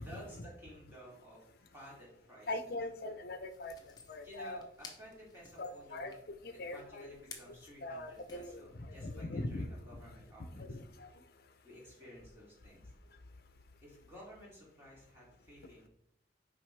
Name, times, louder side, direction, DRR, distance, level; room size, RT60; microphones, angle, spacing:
voice 1, 0.0-2.7 4.2-6.2 6.5-10.8 11.6-12.8 13.8-15.9, equal, 15° right, -5 dB, 2.6 m, -54 dB
voice 2, 2.5-3.8 4.1-4.6 5.6-6.1 6.4-7.2 7.8-9.7 9.9-10.0 10.4-11.1, left 2 dB, 55° left, 9 dB, 0.6 m, -41 dB
sound 1, 3.5-8.5, left 5 dB, 20° left, 0.9 m, -56 dB
8.3 x 5.1 x 3.3 m, 0.76 s
head